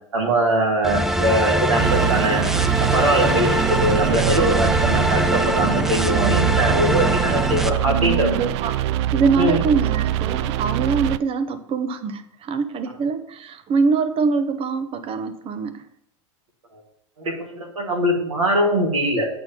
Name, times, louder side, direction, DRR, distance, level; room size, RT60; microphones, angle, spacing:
voice 1, 0.1-2.5 2.8-8.3 9.4-9.6 16.7-16.8 17.2-19.3, right 1 dB, 90° right, 0 dB, 2.0 m, -21 dB
sound 1, 0.8-7.7, equal, ahead, 0.5 m, -22 dB
sound 2, 1.8-11.2, right 13 dB, 65° right, 0.4 m, -24 dB
voice 2, 7.9-8.8 9.1-15.8, right 5 dB, 35° right, 10 dB, 0.9 m, -23 dB
8.4 x 4.6 x 5.7 m, 0.74 s
hypercardioid pair, 90°, 16 cm